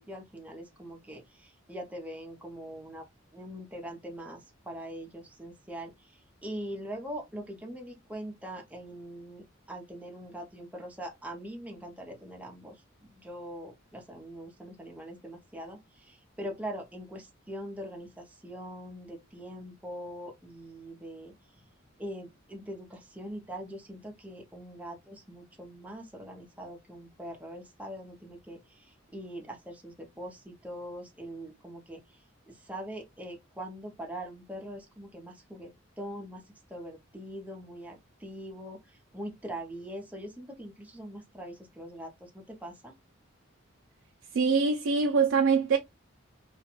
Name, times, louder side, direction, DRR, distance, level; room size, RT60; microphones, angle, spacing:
voice 1, 0.0-3.1 3.3-21.7 22.0-36.4 36.7-42.9, equal, 5° right, 0.5 m, -42 dB
voice 2, 44.3-45.8, right 5 dB, 80° right, 0.4 m, -24 dB
2.4 x 2.1 x 2.9 m
head